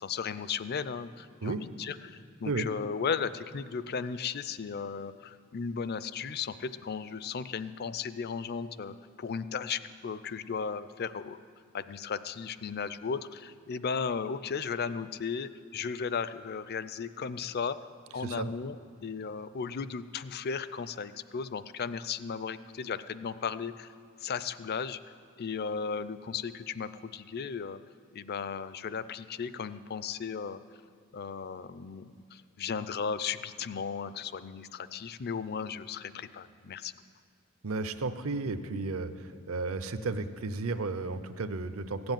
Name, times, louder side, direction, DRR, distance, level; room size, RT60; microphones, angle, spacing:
voice 1, 0.0-11.4 11.7-17.8 18.1-18.8 19.0-23.9 24.2-25.0 25.4-27.8 28.1-30.6 31.1-36.9, left 6 dB, 45° left, 14 dB, 0.5 m, -35 dB
voice 2, 37.6-42.1, right 3 dB, 70° right, 11 dB, 0.7 m, -33 dB
16.0 x 7.9 x 9.0 m, 2.1 s
head